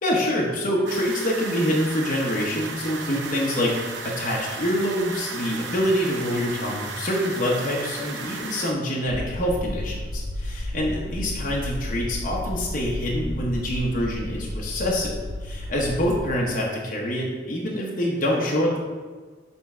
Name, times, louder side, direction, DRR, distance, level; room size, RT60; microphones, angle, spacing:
voice 1, 0.0-18.8, equal, 45° left, -3 dB, 0.9 m, -26 dB
sound 1, 0.9-8.7, right 4 dB, 80° right, 0.6 m, -35 dB
sound 2, 9.1-16.2, left 1 dB, 70° left, 1.3 m, -32 dB
7.0 x 3.5 x 4.3 m, 1.4 s
head